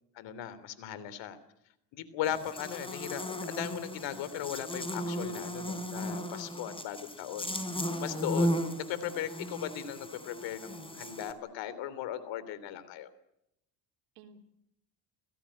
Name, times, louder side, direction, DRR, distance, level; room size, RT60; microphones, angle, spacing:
voice 1, 0.1-1.4 1.9-7.5 8.0-13.1, left 11 dB, 70° left, 14 dB, 3.2 m, -38 dB
Buzz, 2.2-11.3, equal, 10° left, 4.1 m, -36 dB
voice 2, 7.7-8.7 14.2-14.5, right 9 dB, 80° right, 4 dB, 3.6 m, -52 dB
29.5 x 16.5 x 8.7 m, 0.82 s
supercardioid pair, 90°, 46 cm